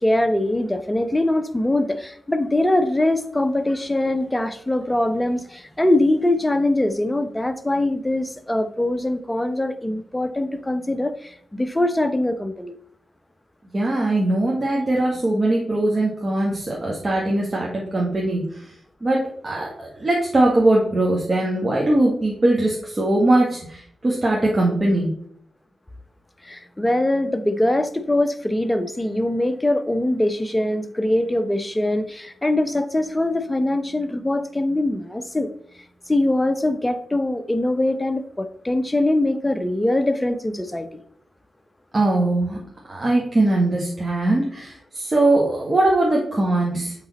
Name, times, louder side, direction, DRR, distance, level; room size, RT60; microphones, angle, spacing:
voice 1, 0.0-12.7 26.4-35.5 36.1-41.0, left 1 dB, 15° left, 10 dB, 0.8 m, -22 dB
voice 2, 13.7-18.4 19.0-25.1 41.9-42.6 42.9-46.9, right 2 dB, 35° right, -3 dB, 1.7 m, -21 dB
8.0 x 4.0 x 4.3 m, 0.64 s
cardioid pair, 50°, 0 cm